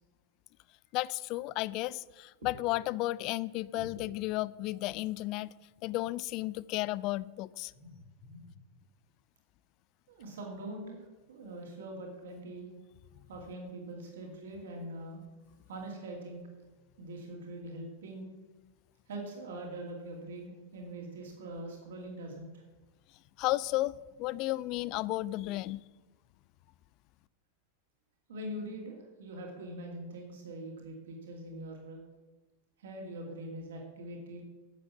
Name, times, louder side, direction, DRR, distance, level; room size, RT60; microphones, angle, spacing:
voice 1, 0.9-5.5 5.8-7.7 23.4-25.8, left 17 dB, 40° left, 21 dB, 0.3 m, -33 dB
voice 2, 7.7-8.5 10.1-12.7 13.3-15.2 15.7-16.4 17.0-18.3 19.1-22.6 28.3-32.0 32.8-34.4, right 1 dB, 60° right, 0 dB, 2.5 m, -43 dB
10.5 x 7.7 x 7.2 m, 1.2 s
figure-of-eight pair, 90°, 0 cm